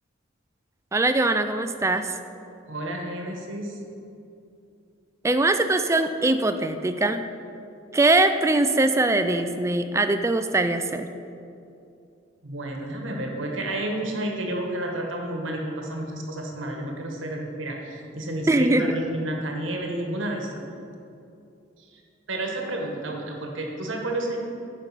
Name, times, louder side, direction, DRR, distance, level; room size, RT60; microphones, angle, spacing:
voice 1, 0.9-2.1 5.2-7.3 7.9-11.1 18.5-18.9, right 2 dB, 15° right, 9 dB, 0.3 m, -22 dB
voice 2, 2.7-3.8 12.4-20.5 21.8-22.0 22.3-24.4, right 1 dB, 75° right, 1 dB, 1.2 m, -31 dB
9.1 x 5.3 x 5.5 m, 2.6 s
head